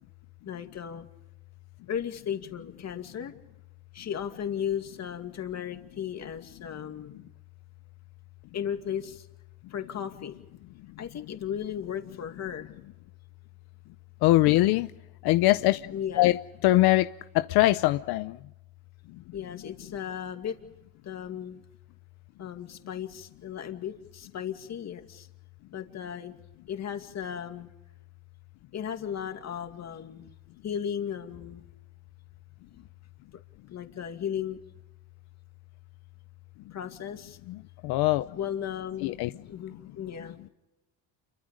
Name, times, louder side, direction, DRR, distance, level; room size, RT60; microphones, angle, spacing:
voice 1, 0.4-1.0 1.9-3.3 3.9-7.2 8.5-9.3 9.7-10.4 11.0-12.8 15.9-16.3 19.3-20.5 21.0-21.6 22.4-25.3 25.7-26.3 26.7-27.7 28.7-30.3 30.6-31.6 32.7-32.8 33.7-34.6 36.7-37.4 38.3-40.5, left 9 dB, 45° left, 6 dB, 2.4 m, -35 dB
voice 2, 14.2-14.9 15.2-15.8 16.2-16.4 16.6-17.1 17.3-18.4 37.5-37.6 37.8-38.2 39.0-39.3, left 17 dB, 85° left, 11 dB, 0.8 m, -22 dB
28.5 x 24.0 x 5.2 m, 0.98 s
cardioid pair, 125°, 37 cm